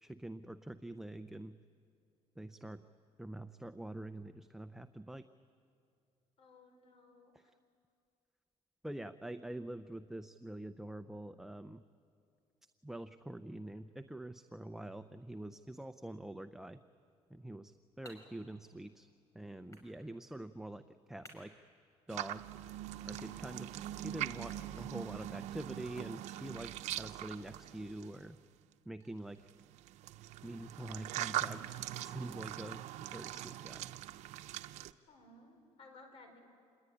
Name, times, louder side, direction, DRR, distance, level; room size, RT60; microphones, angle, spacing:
voice 1, 0.0-1.6 2.4-2.8 3.2-5.2 7.3-7.4 8.8-11.8 12.8-16.8 17.3-19.1 19.3-20.8 21.1-21.5 22.1-22.4 23.1-23.7 24.0-28.4 28.9-29.5 30.4-32.8 33.1-33.9, right 1 dB, 5° right, 9 dB, 0.6 m, -45 dB
voice 2, 6.4-7.5 35.1-36.4, left 2 dB, 55° left, 6 dB, 4.4 m, -58 dB
sound 1, 17.3-28.2, equal, 30° left, 5.7 m, -64 dB
sound 2, 22.1-28.3 29.4-34.9, right 13 dB, 85° right, 0.7 m, -42 dB
27.5 x 20.5 x 10.0 m, 2.5 s
cardioid pair, 120°, 12 cm